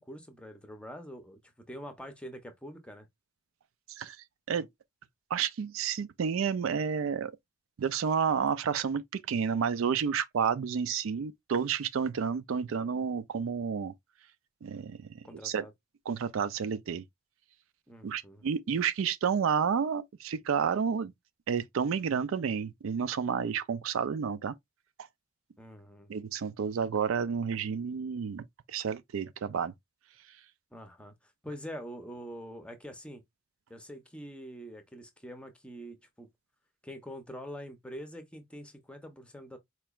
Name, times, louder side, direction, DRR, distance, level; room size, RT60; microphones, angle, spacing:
voice 1, 0.0-1.4 1.7-3.1 15.2-15.7 17.9-18.4 25.6-26.1 30.7-33.2 33.7-36.3 36.8-39.6, equal, 5° left, 0.6 m, -45 dB
voice 2, 5.3-7.3 7.8-13.9 14.6-15.0 15.4-15.6 16.1-17.0 18.0-21.1 21.5-24.5 26.1-29.7, right 6 dB, 75° right, 0.4 m, -30 dB
4.3 x 2.9 x 2.3 m
head